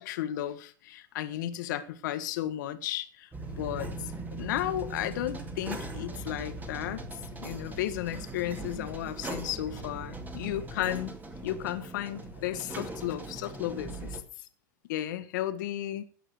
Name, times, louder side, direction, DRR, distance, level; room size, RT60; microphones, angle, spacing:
voice 1, 0.0-3.3 3.6-7.0 7.4-11.1 11.4-14.2 14.9-16.1, left 13 dB, 65° left, 1.4 m, -34 dB
sound 1, 3.3-14.2, right 2 dB, 15° right, 2.2 m, -40 dB
16.0 x 6.5 x 6.4 m
hypercardioid pair, 85°, 11 cm